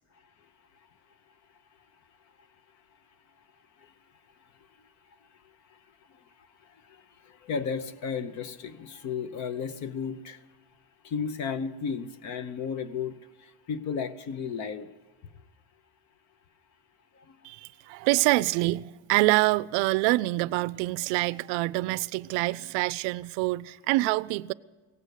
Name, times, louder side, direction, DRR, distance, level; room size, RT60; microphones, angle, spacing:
voice 1, 4.4-4.8 5.1-10.4 11.0-14.9 15.3-15.4 17.1-17.5, left 6 dB, 40° left, 0.7 m, -35 dB
voice 2, 17.4-24.5, right 20 dB, 75° right, 0.5 m, -26 dB
17.5 x 7.8 x 8.2 m
cardioid pair, 165°, 43 cm